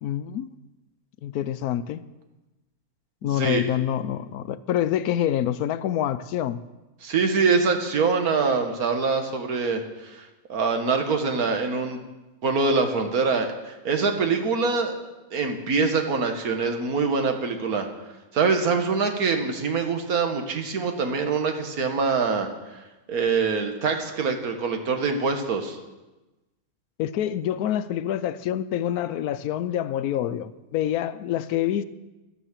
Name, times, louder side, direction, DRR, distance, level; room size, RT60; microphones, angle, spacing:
voice 1, 0.0-0.5 1.2-2.0 3.2-6.6 27.0-31.8, left 11 dB, 85° left, 1.1 m, -26 dB
voice 2, 3.2-3.6 7.0-10.2 10.5-12.0 12.4-14.9 15.3-17.9 18.3-22.5 23.1-25.8, right 4 dB, 75° right, 1.8 m, -24 dB
11.5 x 9.7 x 7.4 m
omnidirectional pair, 1.6 m